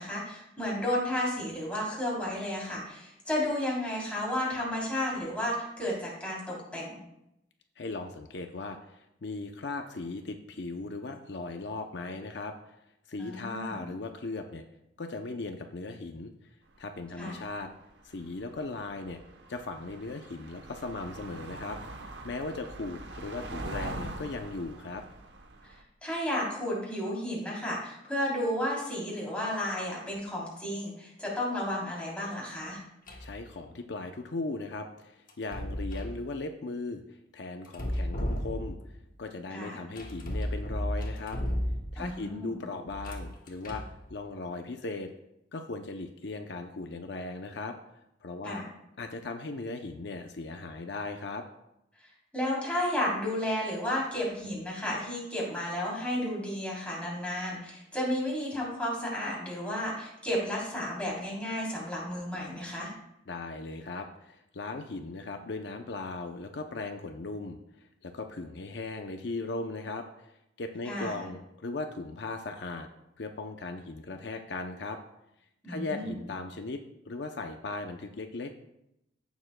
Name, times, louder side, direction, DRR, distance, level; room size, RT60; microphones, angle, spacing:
voice 1, 0.0-7.0 13.2-13.9 17.2-17.4 26.0-32.8 39.5-39.7 42.0-42.6 48.4-48.7 52.0-62.9 70.9-71.1 75.6-76.1, left 1 dB, 5° left, -5 dB, 3.3 m, -32 dB
voice 2, 7.8-12.5 13.1-14.6 15.0-16.3 16.8-17.7 18.0-19.2 19.5-25.0 33.2-38.8 39.2-41.4 41.9-43.8 44.1-45.1 45.5-47.7 48.2-48.6 49.0-51.4 63.3-70.3 70.6-72.9 73.2-75.0 75.7-78.5, left 3 dB, 70° left, 5 dB, 0.6 m, -38 dB
sound 1, 16.8-17.1 17.4-25.8, right 2 dB, 70° right, 1.0 m, -43 dB
sound 2, 33.1-33.4 35.3-36.2 37.6-39.0 40.0-42.1 42.9-44.0, equal, 50° left, 1.3 m, -34 dB
15.0 x 7.1 x 2.2 m, 0.84 s
head